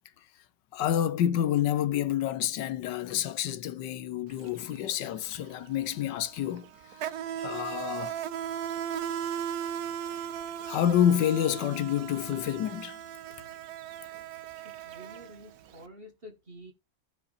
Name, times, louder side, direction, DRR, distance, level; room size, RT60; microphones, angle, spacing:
voice 1, 0.7-7.0 7.4-8.2 10.6-13.0, left 10 dB, 75° left, 1.4 m, -28 dB
Insect, 4.3-4.5 4.8-15.8, right 9 dB, 65° right, 1.2 m, -37 dB
voice 2, 14.5-16.7, equal, 30° right, 2.0 m, -49 dB
15.0 x 6.1 x 2.6 m
omnidirectional pair, 2.0 m